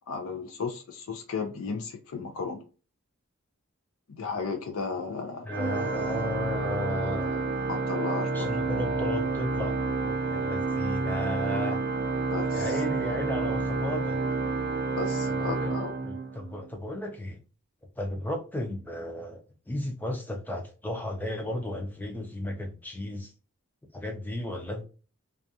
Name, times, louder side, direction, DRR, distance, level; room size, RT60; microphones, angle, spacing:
voice 1, 0.1-2.6 4.2-5.5 7.7-8.5 12.3-12.8 15.0-15.9, left 4 dB, 80° left, 0.4 m, -34 dB
voice 2, 5.4-7.5 8.3-11.8 12.5-14.2 15.4-15.8 16.0-17.4 18.0-23.3 23.9-24.8, left 1 dB, 10° left, 0.4 m, -34 dB
Organ, 5.5-16.7, right 3 dB, 50° right, 0.5 m, -29 dB
2.4 x 2.2 x 2.7 m
head